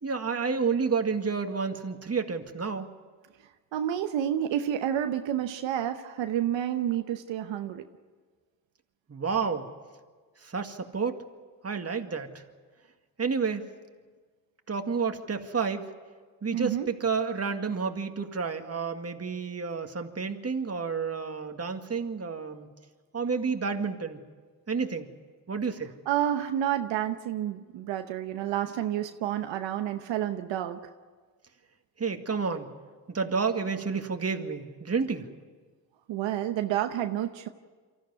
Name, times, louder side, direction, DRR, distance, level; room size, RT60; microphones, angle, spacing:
voice 1, 0.0-2.9 9.1-9.7 10.4-11.2 11.6-12.3 13.2-13.7 14.7-15.9 16.4-22.7 23.1-24.2 24.7-25.1 25.5-25.9 32.0-32.7 33.1-35.3, right 5 dB, 35° right, 5 dB, 2.1 m, -30 dB
voice 2, 3.7-7.8 16.5-16.9 26.1-30.8 36.1-37.5, right 11 dB, 85° right, 7 dB, 1.0 m, -29 dB
24.0 x 14.5 x 9.6 m, 1.5 s
supercardioid pair, 55°, 44 cm